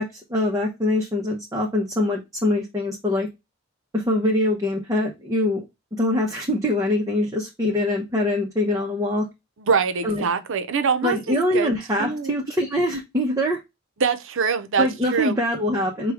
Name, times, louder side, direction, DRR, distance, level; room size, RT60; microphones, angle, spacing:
voice 1, 0.0-3.3 3.9-5.6 6.0-9.3 10.0-10.3 11.0-13.6 14.8-16.1, left 1 dB, 15° right, 0.7 m, -23 dB
voice 2, 9.6-12.3 14.0-15.4, right 5 dB, 65° right, 0.7 m, -24 dB
4.7 x 2.3 x 4.6 m
head